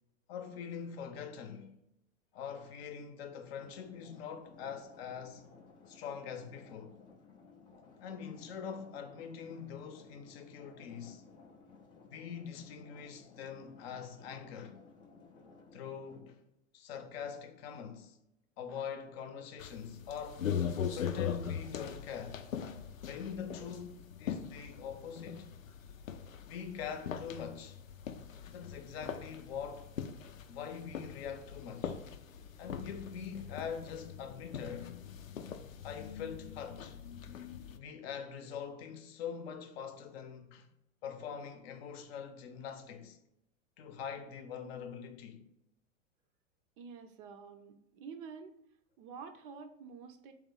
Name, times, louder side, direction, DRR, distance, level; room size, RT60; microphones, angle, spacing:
voice 1, 0.3-1.7 2.3-5.5 5.9-7.0 8.0-11.2 12.1-14.8 15.7-16.4 16.7-18.2 18.6-20.5 20.9-22.5 23.0-25.5 26.5-27.8 28.5-29.9 30.5-32.0 32.6-35.0 35.8-37.0 37.7-40.7 41.0-43.2 43.8-45.4, left 7 dB, 50° left, 0.7 m, -43 dB
sound 1, 3.5-16.2, left 4 dB, 15° left, 0.3 m, -58 dB
sound 2, 19.6-37.8, left 8 dB, 90° left, 0.5 m, -41 dB
voice 2, 46.8-48.5 49.0-50.3, right 5 dB, 45° right, 0.5 m, -48 dB
3.6 x 3.1 x 3.8 m
hypercardioid pair, 100°, 39 cm